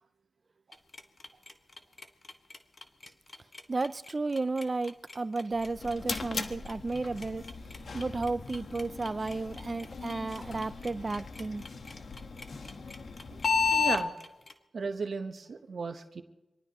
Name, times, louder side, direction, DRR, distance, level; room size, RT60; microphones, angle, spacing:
sound 1, 0.7-14.5, left 2 dB, 40° left, 1.5 m, -50 dB
voice 1, 3.7-7.4 7.9-11.7, right 3 dB, 40° right, 0.5 m, -33 dB
sound 2, 5.5-14.0, left 5 dB, 65° left, 1.3 m, -34 dB
voice 2, 13.7-14.1 14.7-16.2, right 4 dB, 60° right, 1.2 m, -35 dB
25.0 x 19.0 x 3.1 m
cardioid pair, 55°, 0 cm